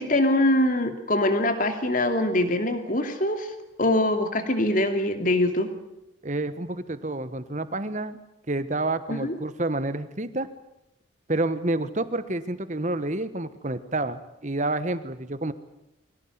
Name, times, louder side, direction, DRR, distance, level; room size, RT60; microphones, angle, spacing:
voice 1, 0.0-3.5 3.8-5.7 9.1-9.3, left 1 dB, 40° left, 7 dB, 2.6 m, -23 dB
voice 2, 6.2-8.2 8.5-10.5 11.3-15.5, right 2 dB, 40° right, 12 dB, 1.4 m, -29 dB
22.5 x 17.5 x 9.6 m, 0.87 s
head